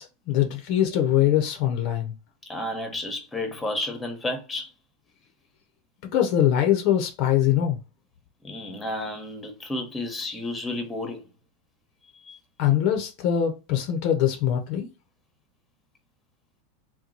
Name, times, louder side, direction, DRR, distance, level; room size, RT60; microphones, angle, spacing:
voice 1, 0.0-2.1 6.1-7.8 12.6-14.9, left 11 dB, 55° left, 0.7 m, -23 dB
voice 2, 2.5-4.7 8.4-11.3 12.2-12.4, left 1 dB, 15° left, 1.0 m, -32 dB
2.9 x 2.2 x 3.9 m
hypercardioid pair, 100°, 0 cm